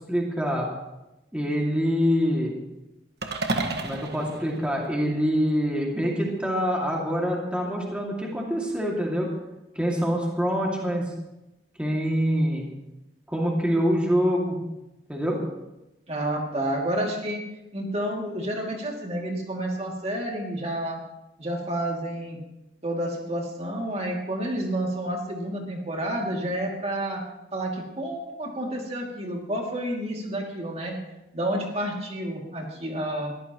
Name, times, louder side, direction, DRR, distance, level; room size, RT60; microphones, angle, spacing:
voice 1, 0.1-0.7 1.3-2.6 3.8-9.3 9.7-11.1 11.8-12.6 13.3-14.6 15.1-15.4, equal, 5° right, -2 dB, 2.3 m, -25 dB
sound 1, 3.2-5.5, right 2 dB, 65° right, 1.6 m, -32 dB
voice 2, 16.1-17.4 17.7-21.0 21.4-22.4 22.8-27.2 27.5-30.9 31.3-33.3, right 1 dB, 35° right, 0 dB, 2.5 m, -30 dB
22.5 x 14.5 x 3.0 m, 0.97 s
head